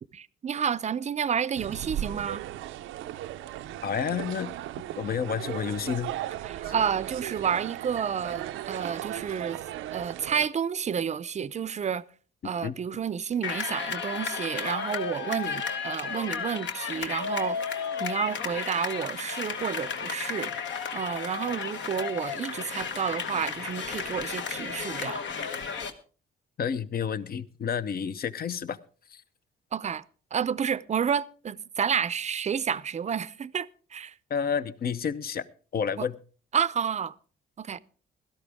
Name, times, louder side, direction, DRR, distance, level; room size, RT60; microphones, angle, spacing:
voice 1, 0.1-2.5 6.4-9.6 9.9-12.0 12.4-25.2 29.7-30.0 30.3-34.2 36.0-36.1 36.5-37.1 37.6-37.8, right 7 dB, 35° right, 0.5 m, -30 dB
sound 1, 1.5-10.5, right 13 dB, 85° right, 0.5 m, -36 dB
voice 2, 3.8-6.1 6.6-6.7 12.6-12.7 26.6-28.8 29.1-29.2 34.3-35.5 35.7-36.1, left 7 dB, 50° left, 0.8 m, -30 dB
sound 2, 13.4-25.9, left 6 dB, 65° left, 1.3 m, -33 dB
16.5 x 13.0 x 3.5 m
cardioid pair, 90°, 20 cm